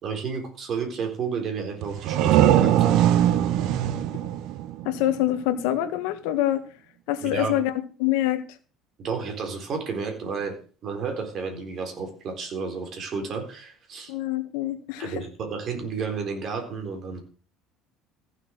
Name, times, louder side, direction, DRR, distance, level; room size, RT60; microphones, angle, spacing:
voice 1, 0.0-3.0 7.2-7.6 9.0-10.6 10.8-14.1 15.0-17.2, right 5 dB, 35° right, 4 dB, 4.0 m, -31 dB
sound 1, 1.8-5.4, right 11 dB, 60° right, 0.9 m, -21 dB
voice 2, 4.8-6.6 7.1-7.7 8.0-8.4 14.1-15.1, left 13 dB, 85° left, 9 dB, 1.7 m, -25 dB
15.0 x 6.9 x 6.4 m, 0.38 s
cardioid pair, 160°, 0 cm